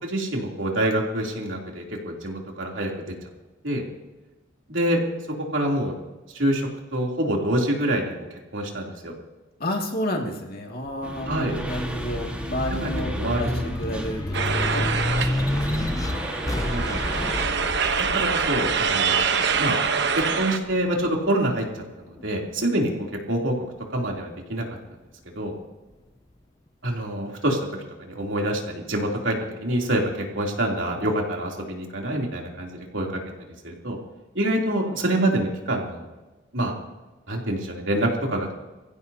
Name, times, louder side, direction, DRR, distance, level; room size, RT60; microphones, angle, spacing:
voice 1, 0.0-3.0 3.6-3.8 4.7-5.0 5.5-6.0 6.3-8.1 8.5-9.1 11.3-11.5 12.8-13.7 16.6-17.3 18.1-19.8 20.2-23.5 23.9-24.6 25.3-25.5 26.8-27.6 28.0-29.3 29.6-33.2 33.6-34.0 34.3-36.1 36.5-36.7 37.3-38.5, right 1 dB, 75° right, -1 dB, 3.2 m, -26 dB
voice 2, 9.6-14.9 15.2-16.4, equal, 50° left, 0 dB, 2.3 m, -31 dB
sound 1, 10.9-21.7 22.2-23.3, left 1 dB, 15° left, 0.5 m, -30 dB
sound 2, 11.0-17.4, equal, 5° right, 1.6 m, -34 dB
sound 3, 14.3-20.6, right 6 dB, 60° right, 1.1 m, -25 dB
24.5 x 15.5 x 2.9 m, 1.1 s
head